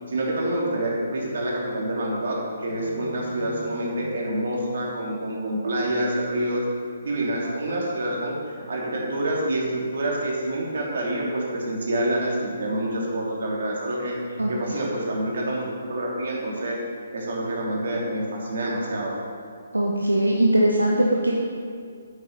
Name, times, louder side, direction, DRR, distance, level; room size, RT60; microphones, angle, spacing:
voice 1, 0.1-6.6 7.0-14.2 14.5-16.8 17.1-19.2, right 1 dB, 55° right, -3 dB, 2.9 m, -27 dB
voice 2, 19.7-21.3, right 1 dB, 80° right, -2 dB, 1.1 m, -20 dB
8.9 x 8.3 x 5.8 m, 2.1 s
figure-of-eight pair, 135°, 0 cm